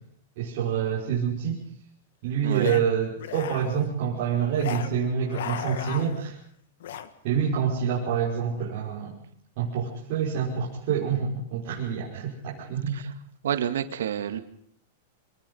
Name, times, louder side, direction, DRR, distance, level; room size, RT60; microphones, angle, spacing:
voice 1, 0.4-1.6 2.2-6.3 7.2-9.1 9.6-13.0, right 7 dB, 35° right, -7 dB, 5.8 m, -27 dB
voice 2, 2.4-2.7 12.9-13.1 13.4-14.4, right 9 dB, 85° right, 9 dB, 2.2 m, -29 dB
sound 1, 2.5-2.8 3.2-3.9 4.5-4.9 5.2-6.3 6.8-7.1, left 9 dB, 60° left, 1.8 m, -36 dB
26.0 x 20.5 x 5.7 m, 0.63 s
supercardioid pair, 180°, 0 cm